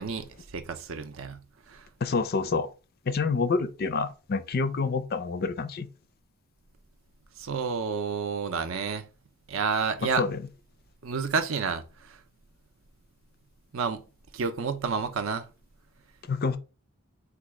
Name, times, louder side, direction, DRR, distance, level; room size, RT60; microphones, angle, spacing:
voice 1, 0.0-1.4 1.7-1.9 7.4-9.0 9.5-10.2 11.0-12.2 13.7-14.0 14.3-15.5, right 5 dB, 65° right, 0.5 m, -30 dB
voice 2, 2.0-2.7 3.1-5.9 10.2-10.4 16.3-16.6, left 4 dB, 45° left, 0.4 m, -27 dB
4.1 x 2.3 x 4.7 m
head